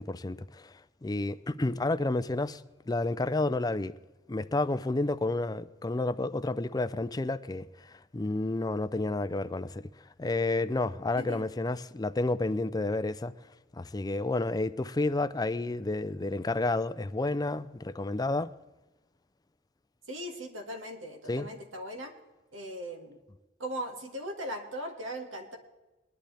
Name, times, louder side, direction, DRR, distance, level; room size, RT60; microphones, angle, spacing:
voice 1, 0.0-2.6 2.9-4.0 4.3-9.9 10.2-13.3 13.7-18.5 21.3-21.5, left 2 dB, 20° left, 0.4 m, -30 dB
voice 2, 11.2-11.5 20.1-22.1 22.5-23.2 23.6-25.6, equal, 80° right, 2.1 m, -39 dB
20.5 x 11.5 x 3.4 m
head